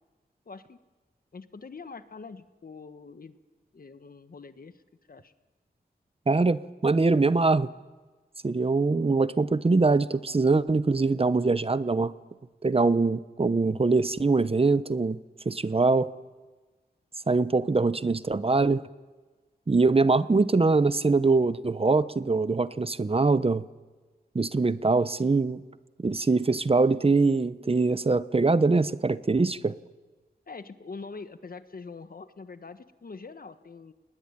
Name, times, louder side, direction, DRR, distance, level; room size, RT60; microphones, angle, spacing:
voice 1, 0.4-0.8 1.3-3.4 3.7-4.8 5.1-5.3 30.5-33.9, left 4 dB, 60° left, 11 dB, 1.5 m, -44 dB
voice 2, 6.3-7.7 8.4-12.2 12.6-16.1 17.1-18.9 19.7-23.7 24.3-25.6 26.0-29.8, right 3 dB, 35° right, 15 dB, 0.8 m, -23 dB
29.0 x 20.0 x 9.8 m, 1.3 s
wide cardioid pair, 75°, 17 cm